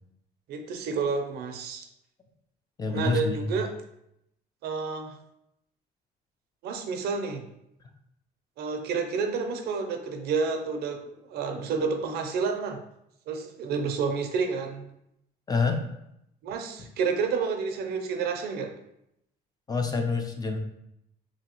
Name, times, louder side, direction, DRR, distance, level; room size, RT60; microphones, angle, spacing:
voice 1, 0.5-1.9 2.9-3.7 4.6-5.2 6.6-7.4 8.6-12.8 13.3-14.8 16.4-18.7, right 5 dB, 70° right, 5 dB, 0.5 m, -30 dB
voice 2, 2.8-3.5 15.5-15.8 19.7-20.6, left 4 dB, 20° left, 4 dB, 0.4 m, -27 dB
2.9 x 2.7 x 2.8 m, 0.79 s
cardioid pair, 110°, 17 cm